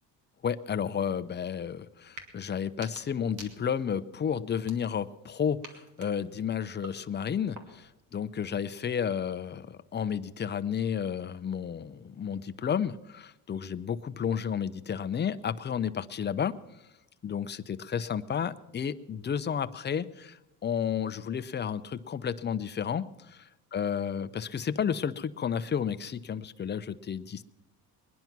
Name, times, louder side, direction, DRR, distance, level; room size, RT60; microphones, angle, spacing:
voice 1, 0.4-16.6 17.2-27.4, left 7 dB, 25° left, 12 dB, 0.7 m, -32 dB
sound 1, 2.1-2.3 2.7-4.0 4.5-5.2 5.6-8.0, right 3 dB, 50° right, 2.6 m, -50 dB
21.0 x 10.5 x 6.0 m, 0.94 s
cardioid pair, 110°, 39 cm